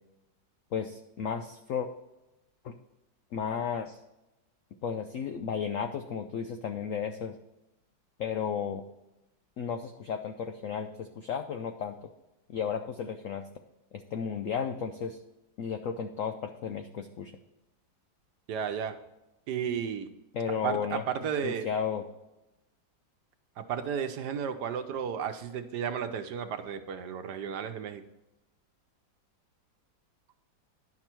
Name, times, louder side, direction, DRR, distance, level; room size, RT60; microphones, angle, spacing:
voice 1, 0.7-1.9 2.6-2.8 3.3-4.0 4.8-7.4 8.2-8.8 9.6-12.1 12.5-13.5 13.9-15.2 15.6-17.3 20.3-21.0 21.4-22.1, left 7 dB, 80° left, 7 dB, 0.7 m, -33 dB
voice 2, 18.5-18.9 19.5-20.1 20.6-21.7 23.6-28.0, right 7 dB, 70° right, 8 dB, 1.2 m, -33 dB
10.5 x 6.1 x 4.5 m, 0.95 s
omnidirectional pair, 2.0 m